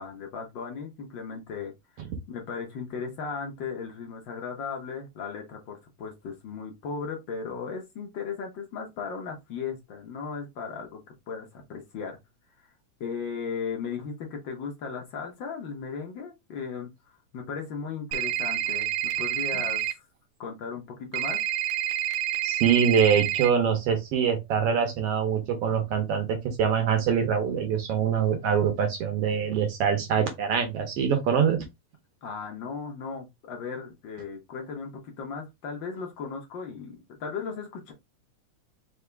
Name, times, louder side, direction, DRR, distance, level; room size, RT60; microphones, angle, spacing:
voice 1, 0.0-1.7 2.3-11.0 11.3-12.2 13.0-16.9 17.3-20.0 20.4-21.4 32.2-37.9, left 5 dB, 60° left, 1.2 m, -36 dB
sound 1, 18.1-19.9 21.1-23.5, right 13 dB, 90° right, 2.1 m, -28 dB
voice 2, 22.4-31.6, right 7 dB, 65° right, 1.6 m, -24 dB
4.8 x 2.8 x 3.3 m
omnidirectional pair, 3.3 m